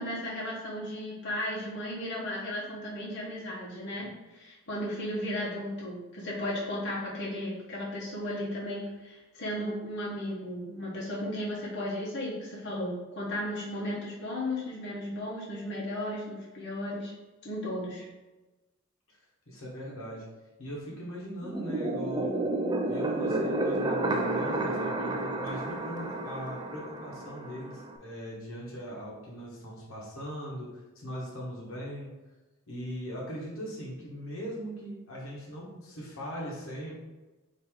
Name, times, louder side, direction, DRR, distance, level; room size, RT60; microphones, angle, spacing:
voice 1, 0.0-17.1 17.4-18.0, left 1 dB, 55° left, -6 dB, 1.1 m, -35 dB
voice 2, 19.1-20.3 20.6-22.4 22.9-32.1 32.7-36.9, equal, 80° left, -4 dB, 1.2 m, -40 dB
sound 1, 21.4-28.0, right 2 dB, 20° right, 0.4 m, -31 dB
4.6 x 2.9 x 3.6 m, 1.1 s
head